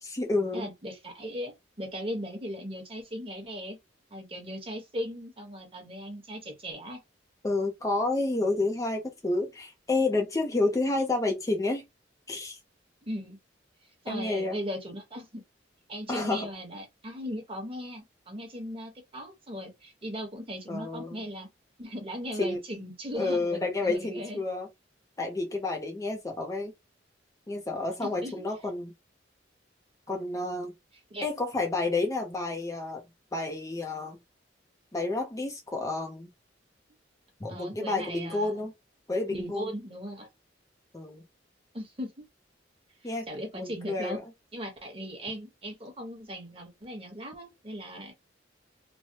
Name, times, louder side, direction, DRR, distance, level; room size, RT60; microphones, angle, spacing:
voice 1, 0.0-0.7 7.4-11.8 12.3-12.6 14.1-14.6 16.1-16.5 20.7-21.2 22.4-22.6 23.1-24.7 25.2-26.7 27.5-28.9 30.1-30.7 31.2-33.0 33.3-34.2 34.9-36.3 37.4-38.7 39.1-39.7 40.9-41.2 43.0-43.3 43.5-44.2, left 2 dB, 20° left, 0.5 m, -30 dB
voice 2, 0.5-3.8 4.1-7.0 13.1-13.4 14.0-15.4 15.9-21.5 21.8-24.4 28.0-28.3 31.1-31.3 37.5-38.6 39.3-40.3 41.7-42.1 43.0-44.2 44.5-48.1, equal, 30° right, 1.2 m, -38 dB
3.2 x 2.1 x 2.7 m
head